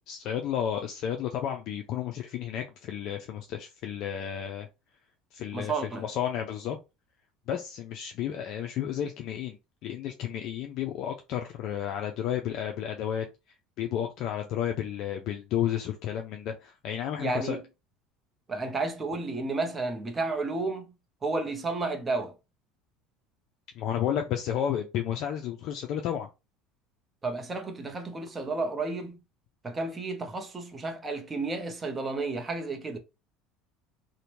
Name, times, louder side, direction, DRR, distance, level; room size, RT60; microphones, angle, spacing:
voice 1, 0.0-4.7 5.3-6.8 7.5-9.6 9.8-13.3 13.8-17.6 23.8-26.3, left 10 dB, 55° left, 0.4 m, -32 dB
voice 2, 5.5-6.0 17.2-17.6 18.5-20.9 21.2-22.3 27.2-29.2 29.6-33.0, right 3 dB, 15° right, 0.6 m, -32 dB
2.7 x 2.1 x 3.0 m
cardioid pair, 140°, 0 cm